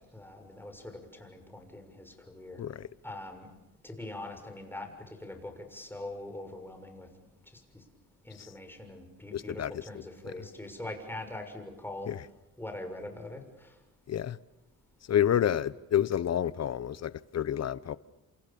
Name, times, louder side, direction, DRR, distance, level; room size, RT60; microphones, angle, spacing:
voice 1, 0.1-2.6 3.0-3.5 3.8-7.1 7.7-7.8 8.2-12.1 12.6-13.7, left 1 dB, 5° left, 5 dB, 6.6 m, -42 dB
voice 2, 9.3-9.8 12.1-12.2 14.1-14.4 15.1-18.0, left 10 dB, 50° left, 17 dB, 1.1 m, -29 dB
28.5 x 28.0 x 7.1 m, 0.96 s
cardioid pair, 100°, 33 cm